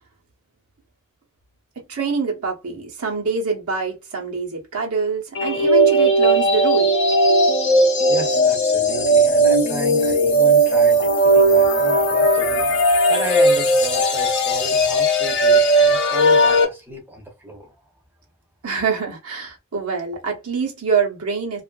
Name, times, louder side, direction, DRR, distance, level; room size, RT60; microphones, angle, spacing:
voice 1, 1.9-6.9 18.6-21.6, right 5 dB, 80° right, 0.9 m, -25 dB
sound 1, 5.3-16.6, right 1 dB, 55° left, 0.6 m, -17 dB
voice 2, 8.1-12.8 13.1-17.7, right 1 dB, 10° right, 0.7 m, -33 dB
2.6 x 2.5 x 2.3 m
head